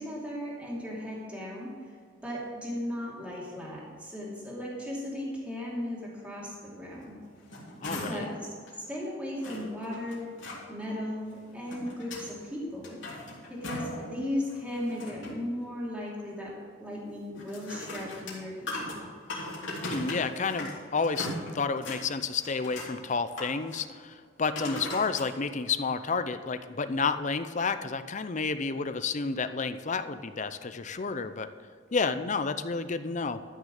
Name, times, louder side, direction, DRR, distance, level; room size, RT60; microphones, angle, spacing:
voice 1, 0.0-2.0 2.2-7.2 8.0-8.5 8.9-10.3 10.7-13.0 13.5-18.9, left 1 dB, 5° right, -6 dB, 2.8 m, -36 dB
sound 1, 7.2-8.4 8.7-8.8 9.4-10.6 11.4-12.3 12.7-14.0 14.4-15.4 17.4-20.8 21.0-22.0 22.4-22.9 23.3-23.8 24.5-25.3 25.9-26.0, left 1 dB, 70° left, 3.2 m, -39 dB
voice 2, 7.8-8.3 19.8-31.5 31.9-33.4, left 4 dB, 40° left, 11 dB, 0.6 m, -30 dB
13.0 x 6.5 x 6.5 m, 2.1 s
head